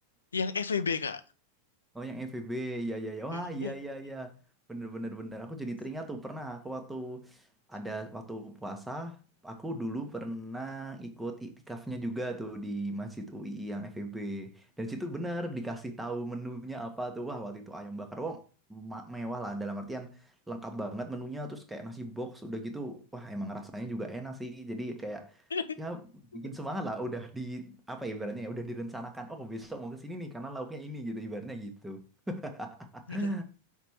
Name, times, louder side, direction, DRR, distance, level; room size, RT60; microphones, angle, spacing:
voice 1, 0.3-1.2 3.3-3.7 25.5-25.6 33.1-33.3, left 5 dB, 75° left, 0.7 m, -32 dB
voice 2, 1.9-4.3 4.7-18.4 18.7-25.4 25.8-26.1 26.3-33.4, right 1 dB, 5° right, 1.3 m, -37 dB
5.8 x 4.6 x 4.4 m
figure-of-eight pair, 90°, 0 cm